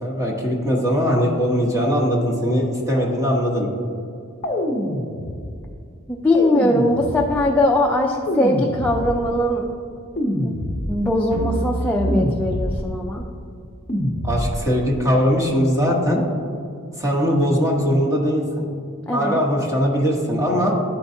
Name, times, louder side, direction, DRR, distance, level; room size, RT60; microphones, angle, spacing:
voice 1, 0.0-3.7 14.2-16.2 17.0-18.7 19.1-20.7, equal, 15° right, -3 dB, 1.1 m, -20 dB
sound 1, 4.4-5.6 6.3-7.5 8.3-9.4 10.2-11.2 12.1-13.0 13.9-14.8, left 1 dB, 30° left, 0.7 m, -25 dB
voice 2, 6.1-9.7 10.4-10.5 10.9-13.2 19.1-19.4, left 1 dB, 10° left, -1 dB, 0.4 m, -21 dB
sound 2, 11.3-13.9, right 1 dB, 60° right, 1.2 m, -29 dB
11.5 x 4.6 x 2.7 m, 2.5 s
head